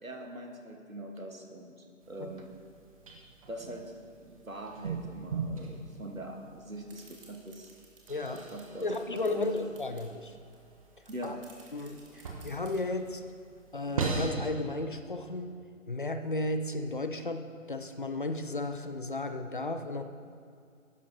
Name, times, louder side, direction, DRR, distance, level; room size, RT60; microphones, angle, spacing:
voice 1, 0.0-2.5 3.5-7.7 8.3-9.5 11.1-11.4, right 1 dB, 90° right, 3 dB, 1.5 m, -43 dB
sound 1, 2.0-14.3, right 4 dB, 25° right, 1.0 m, -41 dB
sound 2, 6.9-10.1 10.5-10.6 10.8-12.8, right 3 dB, 45° right, 2.2 m, -56 dB
voice 2, 8.1-8.4 8.8-10.4 11.2-11.3 11.7-13.2 13.7-15.5 15.9-20.0, left 2 dB, 40° left, 8 dB, 0.5 m, -34 dB
12.5 x 11.0 x 2.7 m, 2.3 s
figure-of-eight pair, 145°, 40 cm